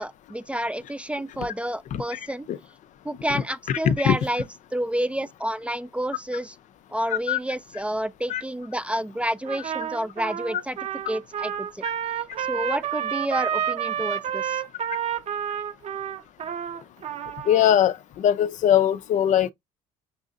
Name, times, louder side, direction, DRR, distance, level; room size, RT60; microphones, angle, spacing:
voice 1, 0.0-2.5 3.0-4.4 4.7-6.6 6.9-10.8 11.1-11.8 12.4-14.6, right 1 dB, 5° right, 0.4 m, -29 dB
voice 2, 3.7-4.1 7.3-7.4 8.3-8.4 17.5-19.5, left 10 dB, 50° left, 0.4 m, -21 dB
Trumpet, 9.4-17.7, right 9 dB, 45° right, 0.7 m, -30 dB
6.1 x 2.7 x 2.4 m
supercardioid pair, 85°, 16 cm